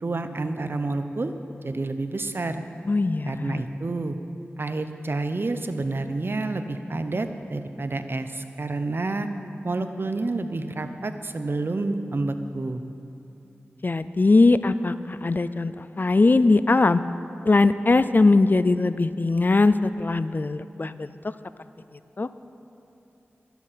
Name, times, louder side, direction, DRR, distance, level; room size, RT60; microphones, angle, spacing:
voice 1, 0.0-1.3 1.6-2.6 3.3-4.2 4.6-9.3 9.6-12.8, right 2 dB, 55° right, 9 dB, 0.8 m, -29 dB
voice 2, 2.9-3.6 13.8-17.0 17.4-21.1 22.2-22.3, left 3 dB, 45° left, 14 dB, 0.4 m, -20 dB
12.0 x 11.5 x 5.7 m, 2.8 s
cardioid pair, 40°, 4 cm